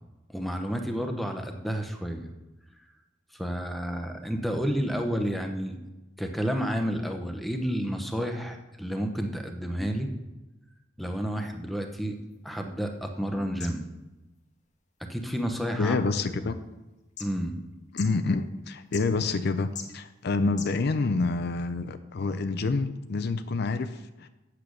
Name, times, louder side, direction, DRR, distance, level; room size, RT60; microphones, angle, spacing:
voice 1, 0.3-2.3 3.3-5.8 6.2-10.1 11.0-12.2 12.4-13.9 15.1-16.0 16.3-16.5 17.2-17.6, equal, ahead, 4 dB, 0.8 m, -30 dB
sound 1, 11.9-21.2, left 6 dB, 40° left, 1.0 m, -49 dB
voice 2, 15.8-16.6 17.9-24.3, left 3 dB, 55° left, 10 dB, 0.5 m, -28 dB
8.4 x 6.8 x 6.3 m, 1.0 s
head